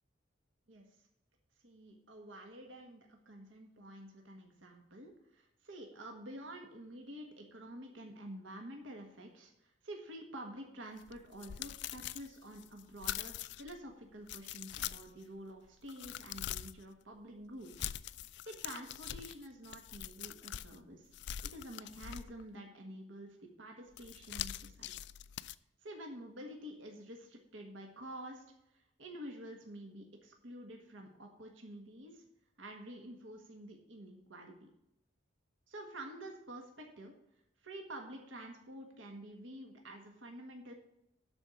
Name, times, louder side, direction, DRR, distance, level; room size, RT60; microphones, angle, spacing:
voice 1, 1.6-17.9 18.4-21.1 21.4-24.9 25.8-28.4 28.7-32.2 32.6-34.7 35.7-37.1 37.6-40.7, right 1 dB, 80° right, 2 dB, 1.5 m, -49 dB
sound 1, 11.0-13.7 14.2-15.2 15.6-16.8 17.6-20.8 21.1-22.5 23.9-25.5, left 11 dB, 60° left, 0.3 m, -43 dB
12.0 x 4.5 x 6.7 m, 0.83 s
head